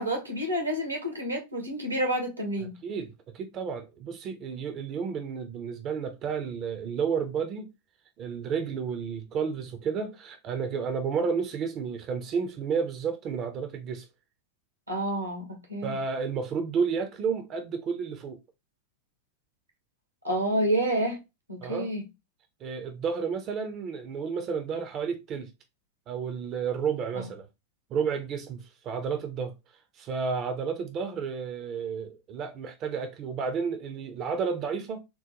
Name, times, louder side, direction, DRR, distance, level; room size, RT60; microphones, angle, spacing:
voice 1, 0.0-2.8 14.9-16.0 20.2-21.2 21.5-22.0 27.2-27.3, right 1 dB, 85° right, 1.0 m, -29 dB
voice 2, 2.6-7.7 8.2-14.1 15.8-18.4 21.6-21.9 22.6-25.5 26.1-27.5 27.9-29.5 29.9-35.0, right 6 dB, 35° right, 0.5 m, -31 dB
3.7 x 2.1 x 2.8 m
figure-of-eight pair, 90°, 0 cm